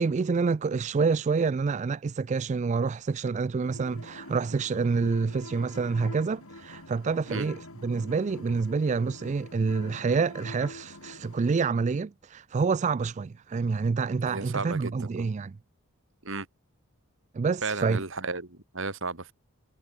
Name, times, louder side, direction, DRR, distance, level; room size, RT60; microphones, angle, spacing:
voice 1, 0.0-15.6 17.3-18.0, right 4 dB, 35° right, 0.3 m, -27 dB
sound 1, 3.6-11.5, left 2 dB, 90° left, 7.0 m, -45 dB
voice 2, 14.3-15.3 16.2-16.5 17.6-19.3, right 3 dB, 60° right, 3.4 m, -34 dB
head